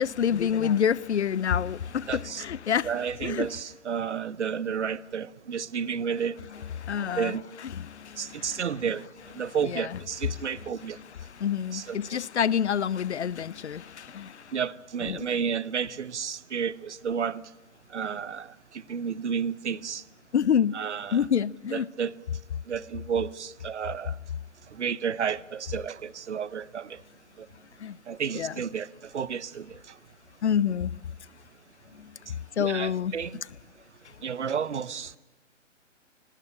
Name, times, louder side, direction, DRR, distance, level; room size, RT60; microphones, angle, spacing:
voice 1, 0.0-2.9 3.2-3.5 6.8-7.4 7.6-8.6 9.6-10.0 11.2-14.5 15.0-15.2 20.3-20.7 21.1-21.9 27.8-28.0 28.3-28.5 30.4-30.9 32.0-32.1 32.6-33.1, left 8 dB, 60° left, 0.7 m, -27 dB
voice 2, 2.1-2.4 2.8-6.4 7.2-7.5 8.2-9.0 9.3-11.0 11.7-12.2 14.5-17.4 17.9-18.5 18.9-20.0 20.7-21.2 21.7-22.1 22.7-24.1 24.7-27.0 28.1-28.9 29.1-29.8 32.6-33.4 34.2-35.2, right 7 dB, 65° right, 1.0 m, -31 dB
18.5 x 17.5 x 9.8 m
figure-of-eight pair, 130°, 38 cm